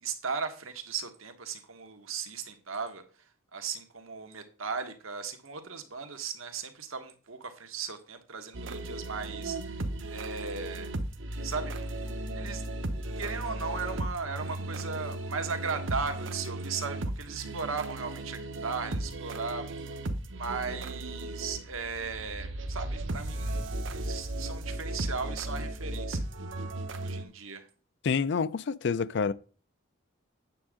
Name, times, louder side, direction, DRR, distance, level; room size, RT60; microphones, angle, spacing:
voice 1, 0.0-3.0 3.5-9.8 10.1-10.9 11.4-11.8 12.3-12.6 13.2-19.8 20.3-23.7 23.9-26.2 27.0-27.7, right 5 dB, 80° right, 1.4 m, -37 dB
sound 1, 8.5-27.2, right 1 dB, 60° right, 0.9 m, -36 dB
voice 2, 28.0-29.3, left 5 dB, 55° left, 0.4 m, -28 dB
8.7 x 7.3 x 3.7 m
head